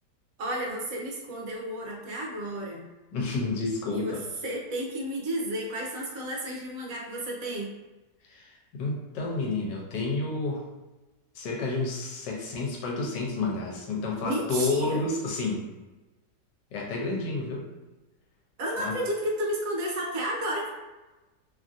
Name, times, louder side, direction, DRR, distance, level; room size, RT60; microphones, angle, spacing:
voice 1, 0.4-2.9 3.9-7.7 14.2-15.1 18.6-20.7, right 1 dB, 65° right, -2 dB, 0.9 m, -32 dB
voice 2, 3.1-4.2 8.2-10.6 11.3-15.7 16.7-17.7 18.8-18.9, left 3 dB, 90° left, -2 dB, 1.3 m, -30 dB
3.0 x 2.5 x 2.4 m, 1.1 s
omnidirectional pair, 1.8 m